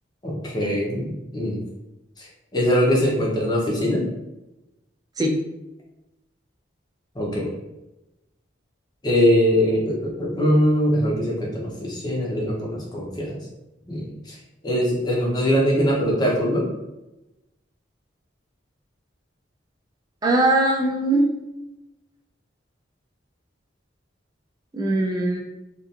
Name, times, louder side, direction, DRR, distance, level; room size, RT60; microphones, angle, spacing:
voice 1, 0.2-1.6 2.2-2.3 2.5-4.1 7.2-7.5 9.0-13.4 13.9-14.4 14.6-16.7, equal, 20° left, -3 dB, 0.6 m, -22 dB
voice 2, 20.2-21.3 24.7-25.4, right 2 dB, 20° right, 0 dB, 0.3 m, -20 dB
2.7 x 2.4 x 2.3 m, 0.96 s
head